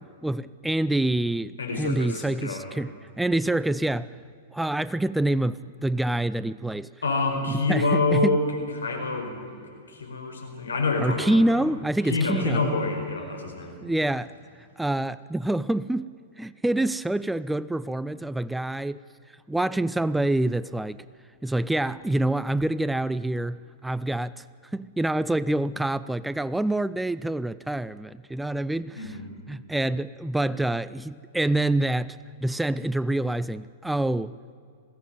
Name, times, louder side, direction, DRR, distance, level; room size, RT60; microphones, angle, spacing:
voice 1, 0.0-4.1 4.5-6.9 7.7-8.4 11.0-12.7 13.8-14.3 14.8-16.1 16.4-19.0 19.5-21.0 21.4-24.4 24.7-29.2 29.5-34.4, right 1 dB, 5° right, 0.4 m, -26 dB
voice 2, 1.6-2.7 7.0-8.4 8.8-9.4 9.9-11.6 12.0-13.8 28.9-29.3, left 3 dB, 80° left, 5.1 m, -27 dB
21.0 x 16.5 x 9.2 m
hypercardioid pair, 105°, 0 cm